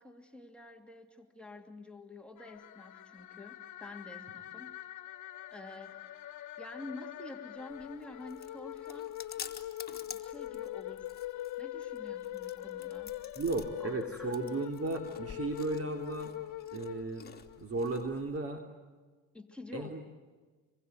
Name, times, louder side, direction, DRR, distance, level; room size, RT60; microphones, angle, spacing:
voice 1, 0.0-4.8 5.5-9.2 10.1-11.2 11.6-13.1 13.8-14.4 16.7-16.8 19.3-19.9, left 2 dB, 5° left, 6 dB, 2.7 m, -48 dB
sound 1, 2.4-17.6, left 14 dB, 50° left, 1.8 m, -43 dB
Chewing mastication, 7.7-18.4, left 7 dB, 25° left, 3.2 m, -50 dB
voice 2, 13.3-16.3 16.7-17.2 17.6-18.6 19.7-20.0, right 3 dB, 40° right, 4 dB, 3.2 m, -35 dB
28.0 x 22.5 x 9.4 m, 1.3 s
supercardioid pair, 100°, 37 cm